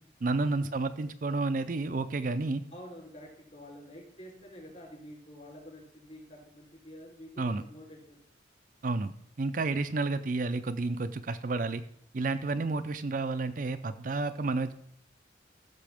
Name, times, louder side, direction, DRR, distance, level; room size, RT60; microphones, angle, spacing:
voice 1, 0.2-2.6 7.4-7.6 8.8-11.8 12.1-14.7, right 3 dB, 45° right, 9 dB, 0.5 m, -31 dB
voice 2, 2.7-8.2 9.8-9.9, equal, 35° left, -1 dB, 3.6 m, -49 dB
15.0 x 6.7 x 3.5 m, 0.66 s
head